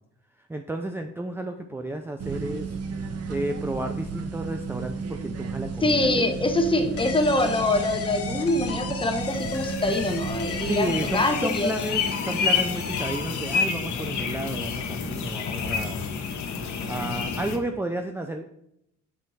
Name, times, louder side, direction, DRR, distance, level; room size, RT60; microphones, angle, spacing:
voice 1, 0.5-6.1 10.6-16.0 16.9-18.5, right 1 dB, 10° right, 6 dB, 0.5 m, -32 dB
sound 1, 2.2-11.2, right 4 dB, 55° right, 0.8 m, -33 dB
voice 2, 5.8-11.7, left 2 dB, 15° left, 5 dB, 1.0 m, -24 dB
sound 2, 7.0-14.3, left 5 dB, 50° left, 1.0 m, -36 dB
sound 3, 9.2-17.6, left 5 dB, 70° left, 1.1 m, -29 dB
7.6 x 4.4 x 4.1 m, 0.78 s
cardioid pair, 90°, 30 cm